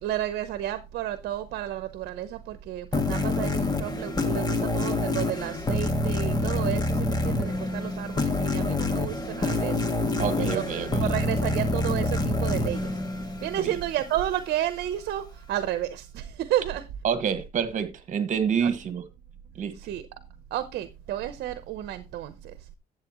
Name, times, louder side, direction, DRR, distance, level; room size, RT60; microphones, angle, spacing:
voice 1, 0.0-10.6 10.9-12.9 13.4-16.9 18.6-18.7 19.8-20.0 20.5-22.5, right 12 dB, 70° right, 0.9 m, -31 dB
sound 1, 2.9-14.1, left 2 dB, 25° left, 1.6 m, -27 dB
voice 2, 10.2-11.1 13.6-13.8 17.0-19.0 19.6-19.7, right 7 dB, 50° right, 1.6 m, -27 dB
11.5 x 7.9 x 3.0 m
cardioid pair, 110°, 17 cm